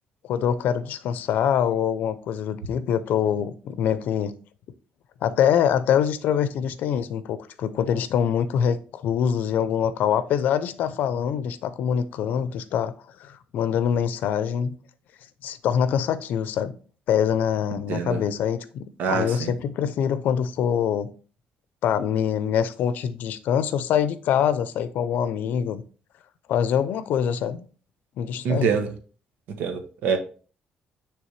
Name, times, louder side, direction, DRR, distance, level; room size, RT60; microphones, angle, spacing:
voice 1, 0.2-4.3 5.2-12.9 13.2-14.8 15.4-16.8 17.1-21.1 21.8-25.8 26.5-27.6 28.2-28.8, left 8 dB, 75° left, 0.5 m, -24 dB
voice 2, 19.0-19.5 28.4-28.9 29.6-30.2, right 5 dB, 85° right, 1.0 m, -24 dB
9.5 x 3.4 x 3.2 m
cardioid pair, 130°, 3 cm